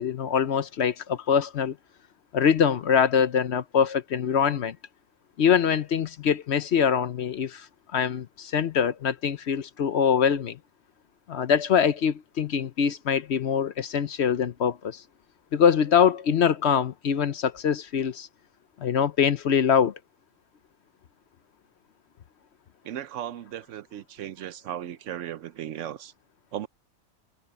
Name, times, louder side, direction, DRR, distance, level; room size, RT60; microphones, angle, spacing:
voice 1, 0.0-1.8 2.3-4.8 5.4-10.6 11.3-15.0 15.5-18.3 18.8-20.0, left 7 dB, 60° left, 0.9 m, -24 dB
voice 2, 22.8-26.1 26.5-26.7, right 11 dB, 70° right, 0.9 m, -36 dB
omnidirectional pair, 1.4 m